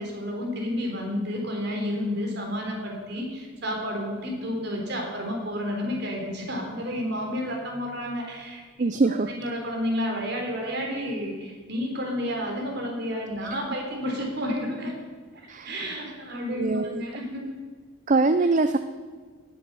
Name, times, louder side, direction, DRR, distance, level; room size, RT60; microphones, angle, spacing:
voice 1, 0.0-8.6 9.4-14.9 15.3-17.5, equal, 55° right, 1 dB, 3.6 m, -31 dB
voice 2, 8.8-9.3 15.5-15.8 16.6-17.0 18.1-18.8, right 3 dB, 40° right, 10 dB, 0.5 m, -23 dB
18.0 x 7.7 x 6.8 m, 1.5 s
head